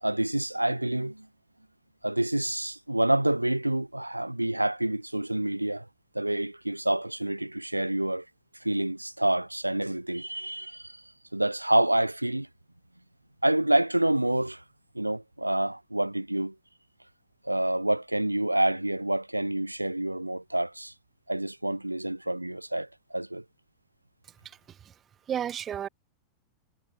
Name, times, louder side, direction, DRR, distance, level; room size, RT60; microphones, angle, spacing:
voice 1, 0.0-1.3 2.0-5.9 6.1-8.2 8.6-11.0 11.3-12.5 13.4-14.6 14.9-16.5 17.4-20.9 21.3-23.4, right 1 dB, 85° right, 0.9 m, -27 dB
voice 2, 24.4-24.9 25.3-25.9, right 9 dB, 25° right, 1.7 m, -33 dB
figure-of-eight pair, 90°, 0 cm